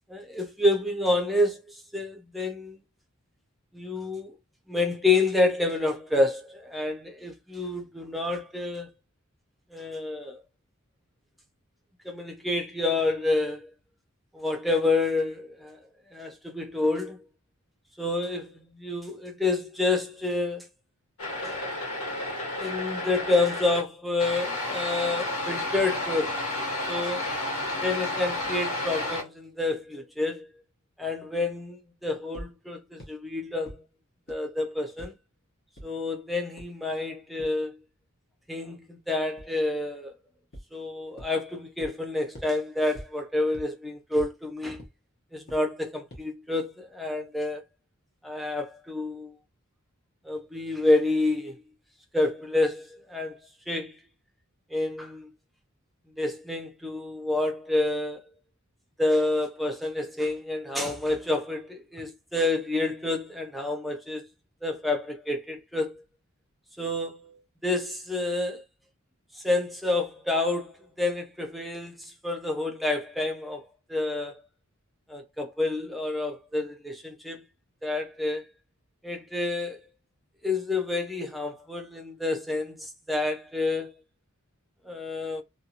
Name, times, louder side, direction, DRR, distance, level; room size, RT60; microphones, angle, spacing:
voice 1, 0.1-2.8 3.7-4.3 4.7-8.9 9.7-10.4 12.0-13.7 14.3-15.8 16.1-17.2 18.0-20.7 21.4-21.7 22.6-26.4 26.9-27.3 27.8-30.5 31.0-33.8 34.3-35.1 35.8-37.8 38.5-40.1 40.7-44.8 45.3-47.6 48.2-49.3 50.2-51.6 52.1-53.4 53.7-54.0 54.7-55.3 56.2-58.2 59.0-64.3 64.6-66.0 66.8-68.6 69.3-73.6 73.9-74.4 75.1-77.4 77.8-78.4 79.0-79.8 80.4-84.0 84.8-85.4, left 2 dB, ahead, 0.5 m, -28 dB
sound 1, 21.2-23.8 24.2-29.2, left 2 dB, 80° left, 1.5 m, -31 dB
sound 2, 32.3-32.5 33.0-33.1 33.7-33.8 34.3-34.4 35.0-35.1 35.8-35.9 36.6-36.7 37.4-37.5 39.4-39.5 40.5-40.6 41.2-41.3 41.8-41.9 42.3-42.5 42.9-43.0 43.5-43.6 44.2-44.3 44.8-44.9 45.5-45.6 46.1-46.2, equal, 50° left, 1.0 m, -41 dB
2.6 x 2.3 x 2.8 m
head